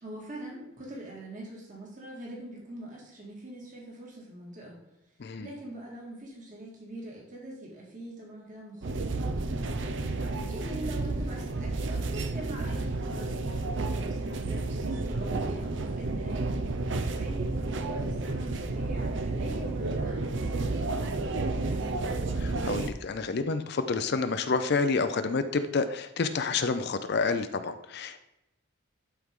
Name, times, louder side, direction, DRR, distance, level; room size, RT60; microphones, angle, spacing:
voice 1, 0.0-4.8 5.4-9.6 10.1-16.4 16.7-22.1, right 1 dB, 40° right, -3 dB, 2.1 m, -43 dB
voice 2, 5.2-5.5 10.0-10.5 22.4-28.2, left 4 dB, 50° left, 10 dB, 0.5 m, -29 dB
sound 1, 8.8-22.9, right 2 dB, 60° right, 0.6 m, -31 dB
11.5 x 4.6 x 3.7 m, 0.89 s
head